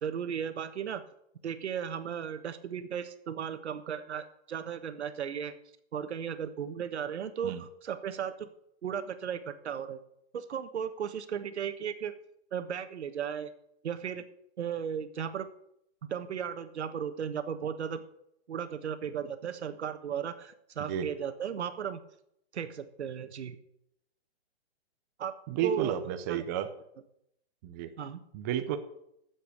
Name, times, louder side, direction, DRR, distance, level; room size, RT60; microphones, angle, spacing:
voice 1, 0.0-1.0 1.4-5.5 5.9-8.5 8.8-10.0 10.3-12.2 12.5-13.5 13.8-14.3 14.6-15.5 16.1-18.0 18.5-22.0 22.5-23.6 25.2-25.3 25.6-25.9 26.3-26.4 28.0-28.2, right 8 dB, 80° right, 10 dB, 1.4 m, -35 dB
voice 2, 25.5-26.7 27.6-27.9 28.3-28.8, right 10 dB, 15° right, 7 dB, 0.5 m, -31 dB
10.5 x 7.5 x 8.3 m, 0.77 s
hypercardioid pair, 155°, 33 cm